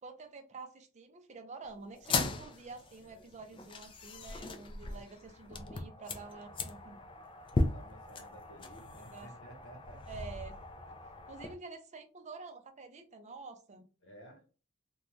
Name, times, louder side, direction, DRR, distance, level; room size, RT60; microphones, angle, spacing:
voice 1, 0.0-7.0 9.0-9.3 10.1-10.5 11.3-13.8, right 4 dB, 35° right, 6 dB, 0.5 m, -48 dB
sound 1, 2.0-11.5, left 3 dB, 25° left, 0.4 m, -38 dB
voice 2, 4.8-5.7 7.6-10.0 14.0-14.4, right 1 dB, 65° left, 1 dB, 1.1 m, -54 dB
2.5 x 2.2 x 3.0 m, 0.35 s
head